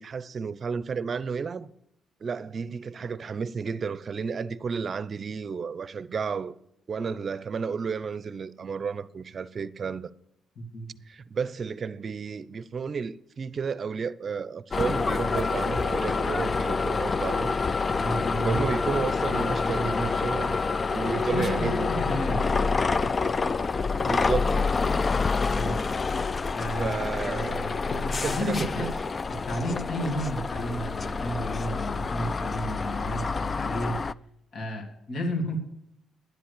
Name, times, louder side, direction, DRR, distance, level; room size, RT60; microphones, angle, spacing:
voice 1, 0.0-1.7 2.2-6.6 6.9-10.1 11.1-17.6 18.4-20.6 20.9-21.9 24.1-24.6 26.7-27.9 28.2-28.9, right 5 dB, 45° right, 0.6 m, -32 dB
voice 2, 10.6-10.9 17.9-18.6 19.3-20.1 21.0-22.5 25.5-25.8 26.5-27.0 27.3-28.9 29.3-34.0 34.5-35.6, equal, 60° left, 2.9 m, -32 dB
sound 1, 14.7-34.1, left 4 dB, 35° left, 0.4 m, -27 dB
11.0 x 7.6 x 8.5 m
cardioid pair, 90°, 0 cm